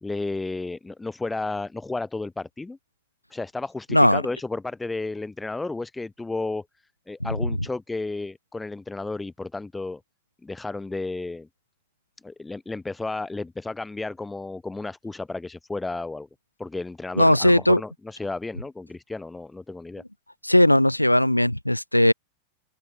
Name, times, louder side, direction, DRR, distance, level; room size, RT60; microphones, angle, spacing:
voice 1, 0.0-2.8 3.3-6.6 7.1-10.0 10.4-11.5 12.2-16.3 16.6-20.0, left 3 dB, 10° left, 3.1 m, -32 dB
voice 2, 17.2-17.8 20.4-22.1, left 1 dB, 90° left, 1.2 m, -18 dB
open air
figure-of-eight pair, 90°, 0 cm